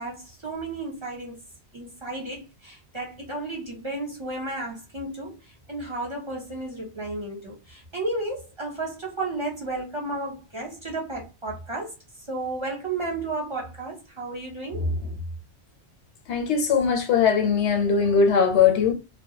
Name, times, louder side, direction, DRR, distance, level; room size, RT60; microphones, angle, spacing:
voice 1, 0.0-1.4 1.7-11.9 12.3-15.2, right 2 dB, 30° right, 0.8 m, -32 dB
voice 2, 16.3-18.9, left 6 dB, 85° left, 1.0 m, -20 dB
2.3 x 2.1 x 2.7 m
omnidirectional pair, 1.1 m